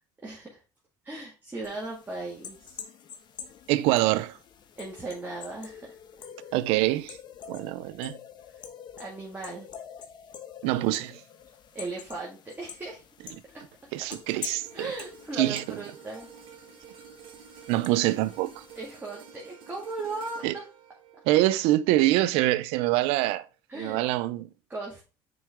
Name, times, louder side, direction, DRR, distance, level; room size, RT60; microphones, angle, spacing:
voice 1, 0.2-0.6 1.0-2.8 4.8-5.9 9.0-9.7 11.7-13.0 13.5-13.6 14.7-16.3 18.7-20.6 23.7-24.0 24.7-25.0, right 3 dB, 20° right, 2.0 m, -37 dB
sound 1, 1.6-19.0, left 7 dB, 50° left, 1.0 m, -46 dB
voice 2, 3.7-4.4 6.5-7.2 7.5-8.2 10.6-11.2 13.9-14.6 15.4-15.8 17.7-18.6 20.4-20.5 21.3-23.5 23.7-24.5, right 16 dB, 80° right, 0.5 m, -25 dB
sound 2, 14.4-22.8 23.2-23.4, right 7 dB, 65° right, 1.7 m, -50 dB
6.1 x 4.7 x 3.5 m
supercardioid pair, 100°, 10 cm